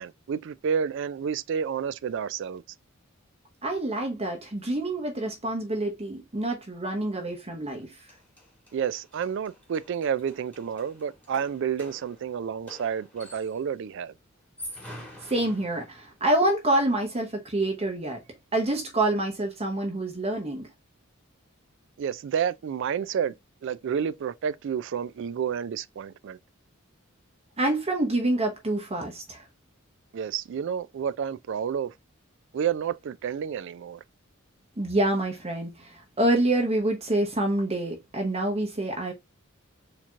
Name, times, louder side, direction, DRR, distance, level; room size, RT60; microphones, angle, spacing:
voice 1, 0.0-2.6 8.7-14.1 22.0-23.3 23.6-26.4 30.1-31.9 32.5-34.0, right 7 dB, 60° right, 0.3 m, -30 dB
voice 2, 3.6-8.0 14.9-15.0 15.2-18.2 18.5-20.7 27.6-29.4 34.8-39.1, right 1 dB, 30° right, 0.8 m, -27 dB
sound 1, 7.8-13.7 14.4-16.2, equal, 5° left, 1.5 m, -47 dB
4.4 x 2.9 x 2.4 m
head